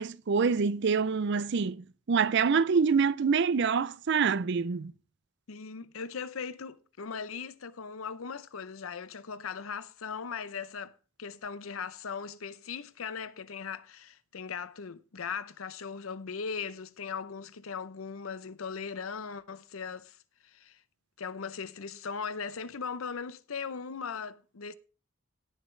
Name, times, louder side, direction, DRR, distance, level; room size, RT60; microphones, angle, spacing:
voice 1, 0.0-4.9, right 5 dB, 60° right, 0.5 m, -26 dB
voice 2, 5.5-20.2 20.4-20.8 21.2-24.7, left 6 dB, 85° left, 0.7 m, -39 dB
17.0 x 7.1 x 3.2 m
head